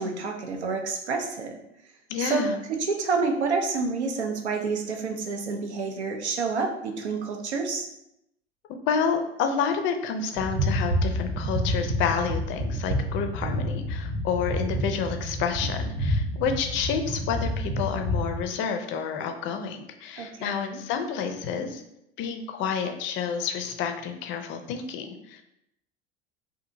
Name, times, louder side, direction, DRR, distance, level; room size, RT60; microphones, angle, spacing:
voice 1, 0.0-1.6 2.2-7.9 20.2-20.8, right 4 dB, 85° right, 3 dB, 0.5 m, -29 dB
voice 2, 2.1-2.6 8.7-21.8 22.2-25.4, left 6 dB, 40° left, 6 dB, 0.4 m, -29 dB
sound 1, 10.4-18.4, equal, 30° right, 0.5 m, -28 dB
2.7 x 2.5 x 2.5 m, 0.81 s
figure-of-eight pair, 75°, 33 cm